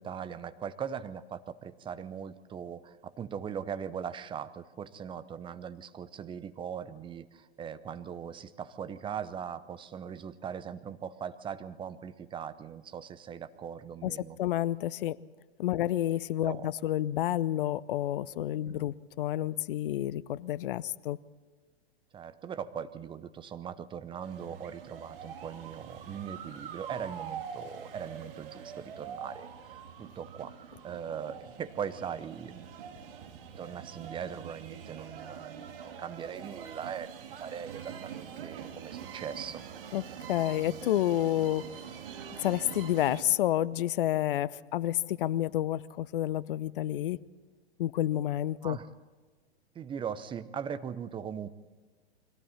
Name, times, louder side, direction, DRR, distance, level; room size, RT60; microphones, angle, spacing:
voice 1, 0.0-14.4 16.5-16.7 18.7-18.8 22.1-30.6 30.8-32.7 33.6-39.6 48.6-48.8 49.7-51.5, right 8 dB, 15° right, 13 dB, 0.8 m, -40 dB
voice 2, 14.0-15.2 15.6-21.2 39.9-40.0 40.3-41.8 42.4-47.2 47.8-48.8, left 13 dB, 55° left, 19 dB, 0.8 m, -29 dB
sound 1, 24.2-43.2, right 7 dB, 55° right, 2.7 m, -44 dB
30.0 x 22.5 x 4.3 m, 1.4 s
hypercardioid pair, 110°, 32 cm